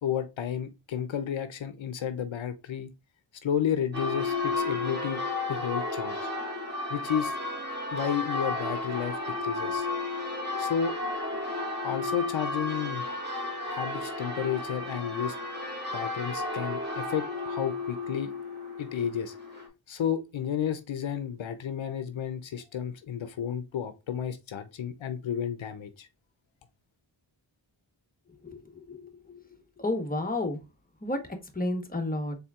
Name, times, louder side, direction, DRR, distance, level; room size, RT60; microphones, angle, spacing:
voice 1, 0.0-2.9 3.4-5.2 5.5-6.2 6.9-7.4 7.9-9.9 10.6-11.0 11.8-13.2 13.7-15.4 15.9-18.3 18.8-19.4 19.9-26.1, left 8 dB, 80° left, 0.6 m, -32 dB
Church bell, 3.9-19.7, left 2 dB, 25° right, 2.0 m, -33 dB
voice 2, 28.4-29.4 29.8-30.6 31.0-31.2 31.5-32.4, left 2 dB, 20° left, 1.0 m, -31 dB
4.3 x 3.5 x 2.3 m
wide cardioid pair, 50°, 46 cm